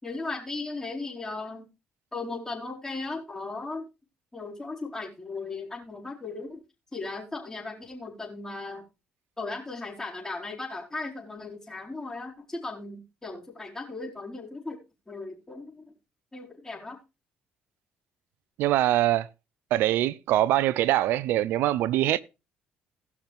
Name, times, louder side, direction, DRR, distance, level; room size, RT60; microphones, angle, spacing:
voice 1, 0.0-1.7 2.1-3.9 4.3-6.6 6.9-8.9 9.4-14.8 15.1-15.9 16.3-17.0, left 3 dB, 15° left, 4.2 m, -37 dB
voice 2, 18.6-19.3 19.7-22.2, right 14 dB, 75° right, 0.5 m, -23 dB
17.0 x 6.0 x 3.5 m
supercardioid pair, 70°, 4 cm